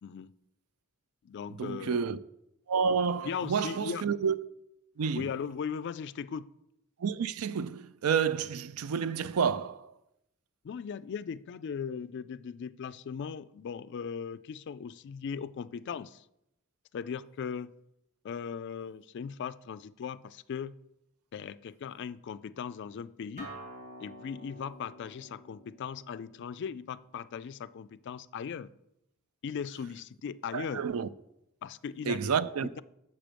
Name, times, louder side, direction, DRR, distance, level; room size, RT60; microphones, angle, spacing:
voice 1, 0.0-0.3 1.2-2.0 3.2-4.0 5.1-6.5 10.6-16.2 16.9-17.7 18.2-20.7 21.3-23.5 24.0-28.7 29.4-30.8 31.6-32.2, left 7 dB, 55° left, 0.3 m, -38 dB
voice 2, 1.5-2.2 2.7-4.4 5.0-5.3 7.0-9.9 30.5-31.1 32.1-32.7, right 6 dB, 85° right, 0.4 m, -30 dB
Acoustic guitar, 23.4-28.6, right 1 dB, 35° right, 2.8 m, -50 dB
7.4 x 6.9 x 5.1 m
head